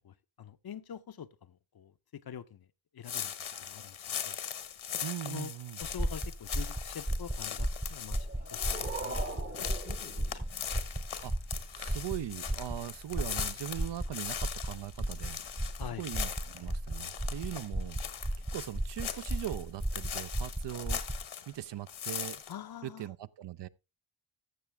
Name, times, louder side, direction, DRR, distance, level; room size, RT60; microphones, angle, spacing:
voice 1, 0.0-2.7 2.9-4.4 5.3-5.5 5.8-8.2 8.5-10.5 15.8-16.1 22.5-23.1, left 9 dB, 50° left, 0.7 m, -46 dB
sound 1, 3.0-21.6 21.9-22.5, left 8 dB, 75° left, 1.3 m, -40 dB
voice 2, 5.0-5.8 11.2-11.3 11.7-15.4 16.0-18.0 18.5-21.0 21.5-22.4 22.8-23.7, right 12 dB, 60° right, 0.6 m, -40 dB
sound 2, 5.8-21.2, right 1 dB, 10° right, 0.5 m, -35 dB
sound 3, 8.1-11.1, right 3 dB, 25° right, 1.0 m, -42 dB
14.5 x 6.0 x 3.3 m
cardioid pair, 70°, 48 cm